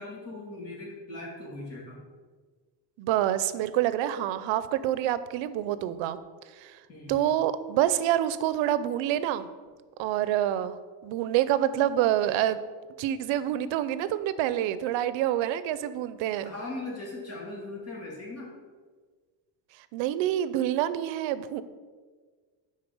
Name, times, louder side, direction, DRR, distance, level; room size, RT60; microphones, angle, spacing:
voice 1, 0.0-2.0 6.9-7.2 16.4-18.5, left 2 dB, 35° left, -3 dB, 2.3 m, -39 dB
voice 2, 3.0-6.2 6.6-6.8 7.1-9.5 10.0-10.8 11.0-12.6 13.0-16.5 19.9-21.6, right 12 dB, 85° right, 14 dB, 0.6 m, -27 dB
9.7 x 4.2 x 5.3 m, 1.5 s
cardioid pair, 155°, 44 cm